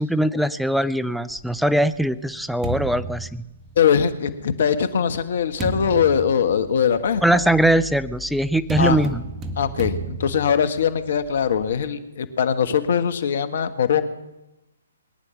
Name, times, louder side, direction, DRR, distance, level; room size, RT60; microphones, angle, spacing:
voice 1, 0.0-3.4 7.2-9.2, right 1 dB, ahead, 15 dB, 0.6 m, -21 dB
sound 1, 1.3-4.1 4.8-11.9, right 2 dB, 20° right, 1.7 m, -34 dB
voice 2, 3.8-7.4 8.8-9.1 9.6-14.1, left 7 dB, 55° left, 10 dB, 1.5 m, -21 dB
21.5 x 9.9 x 5.9 m, 0.98 s
figure-of-eight pair, 130°, 0 cm